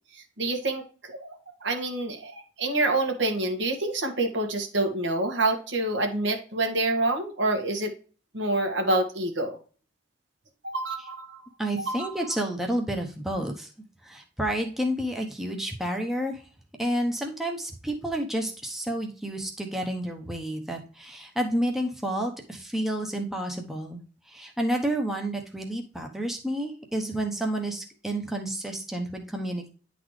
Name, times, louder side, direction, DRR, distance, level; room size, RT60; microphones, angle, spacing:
voice 1, 0.4-1.3 1.6-7.9 8.3-9.6 10.6-11.4 11.8-12.2, right 2 dB, 75° right, 4 dB, 1.5 m, -27 dB
voice 2, 11.6-13.7 14.0-16.4 16.8-24.0 24.3-29.7, right 1 dB, ahead, 1 dB, 0.8 m, -30 dB
10.0 x 4.0 x 3.2 m, 0.38 s
head